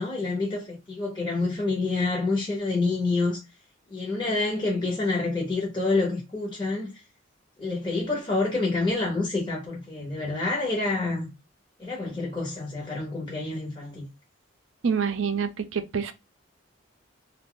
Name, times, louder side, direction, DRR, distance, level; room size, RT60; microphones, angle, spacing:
voice 1, 0.0-3.4 3.9-6.9 7.6-11.3 11.8-14.1, left 3 dB, 25° left, 0.8 m, -27 dB
voice 2, 14.8-16.1, right 6 dB, 70° right, 0.5 m, -26 dB
2.6 x 2.2 x 3.6 m
head